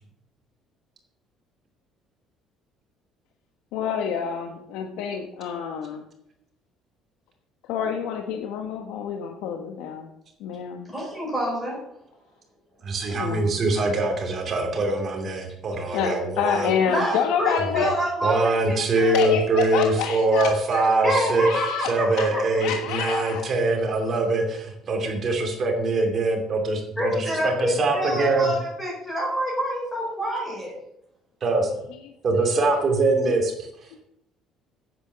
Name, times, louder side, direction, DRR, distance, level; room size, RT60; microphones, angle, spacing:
voice 1, 3.7-6.0 7.7-10.1 10.4-10.9 13.1-13.6 15.9-17.9 18.9-20.9 21.4-23.5 32.0-32.8 33.3-33.4, left 7 dB, 85° left, 4 dB, 1.2 m, -28 dB
voice 2, 10.9-11.8 16.9-19.2 21.0-22.4 27.0-30.7, equal, 10° left, -4 dB, 4.6 m, -27 dB
voice 3, 12.8-16.7 18.2-21.5 21.8-28.5 31.4-31.7 32.2-33.7, right 2 dB, 30° right, 3 dB, 2.6 m, -23 dB
10.5 x 9.0 x 6.7 m, 0.79 s
cardioid pair, 180°, 0 cm